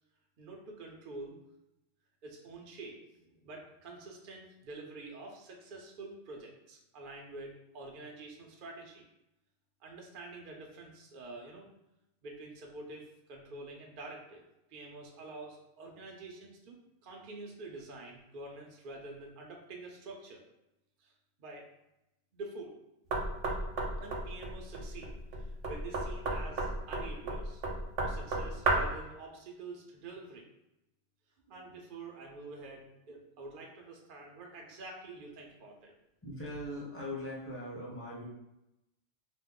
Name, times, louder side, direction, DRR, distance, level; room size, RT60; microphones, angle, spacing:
voice 1, 0.4-1.4 2.2-9.0 9.8-11.7 12.2-14.4 14.7-16.8 17.0-20.4 21.0-21.1 21.4-21.7 22.3-22.7 24.0-27.6 28.0-30.5 31.5-35.9, right 2 dB, 55° right, 0 dB, 0.6 m, -47 dB
Knock, 23.1-29.0, right 2 dB, 85° right, 1.0 m, -33 dB
voice 2, 36.2-38.2, left 1 dB, 15° left, -6 dB, 0.8 m, -40 dB
2.9 x 2.1 x 3.6 m, 0.90 s
omnidirectional pair, 1.2 m